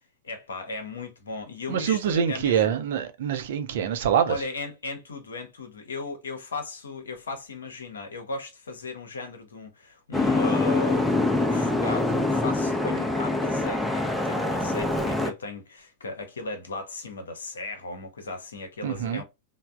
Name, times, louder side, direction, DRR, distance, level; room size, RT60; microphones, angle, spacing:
voice 1, 0.2-2.8 4.3-19.2, left 3 dB, 70° left, 0.7 m, -36 dB
voice 2, 1.7-4.4 18.8-19.2, right 8 dB, 55° right, 0.5 m, -25 dB
Boat Water vehicle, 10.1-15.3, left 2 dB, 5° left, 0.5 m, -25 dB
3.3 x 2.0 x 2.3 m
figure-of-eight pair, 90°, 0 cm